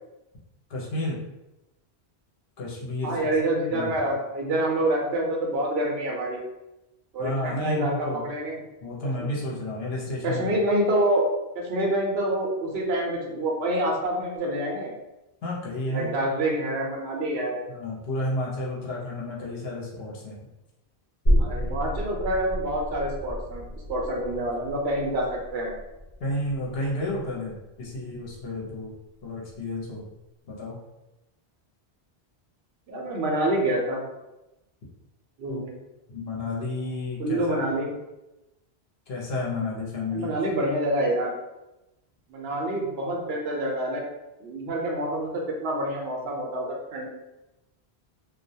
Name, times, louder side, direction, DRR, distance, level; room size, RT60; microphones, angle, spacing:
voice 1, 0.7-1.2 2.6-3.3 3.7-3.9 7.2-8.2 8.8-10.6 15.4-16.1 17.7-20.4 26.2-28.9 29.2-30.1 30.5-30.8 35.5-35.6 36.1-37.7 39.1-40.4, left 1 dB, 70° left, -4 dB, 0.9 m, -31 dB
voice 2, 3.0-6.4 7.1-8.6 10.2-11.2 11.5-14.9 15.9-17.7 21.4-25.7 32.9-34.0 35.4-35.7 37.2-37.9 40.1-41.3 42.3-44.0 44.4-45.3 45.6-47.1, right 1 dB, 70° right, -1 dB, 0.8 m, -27 dB
sound 1, 21.3-28.5 28.9-29.0, equal, 45° left, 1.1 m, -30 dB
2.3 x 2.2 x 2.6 m, 0.97 s
omnidirectional pair, 1.1 m